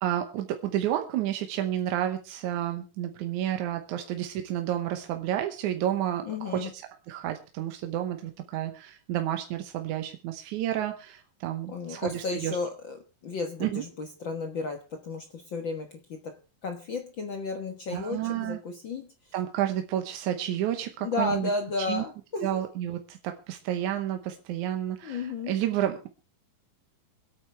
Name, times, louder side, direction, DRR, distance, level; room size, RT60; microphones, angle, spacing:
voice 1, 0.0-12.6 13.6-13.8 17.9-18.6 19.3-21.5 21.8-22.0 22.4-26.1, right 11 dB, 70° right, 6 dB, 2.1 m, -30 dB
voice 2, 6.2-6.7 11.7-16.4 16.6-19.1 21.0-22.6 25.0-25.6, left 3 dB, 60° left, 5 dB, 1.2 m, -33 dB
26.0 x 9.0 x 3.3 m, 0.32 s
omnidirectional pair, 4.1 m